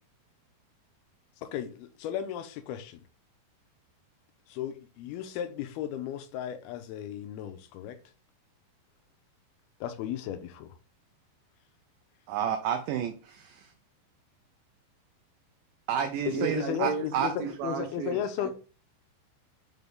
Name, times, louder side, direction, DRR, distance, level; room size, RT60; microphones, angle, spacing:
voice 1, 1.4-3.0 4.5-8.0 9.8-10.7 16.3-17.3 17.6-18.5, left 10 dB, 90° left, 8 dB, 2.6 m, -35 dB
voice 2, 12.3-13.7 15.9-17.3, right 9 dB, 90° right, 7 dB, 1.8 m, -30 dB
voice 3, 16.3-18.5, right 6 dB, 75° right, 4 dB, 2.7 m, -35 dB
6.0 x 5.3 x 3.5 m, 0.36 s
omnidirectional pair, 4.5 m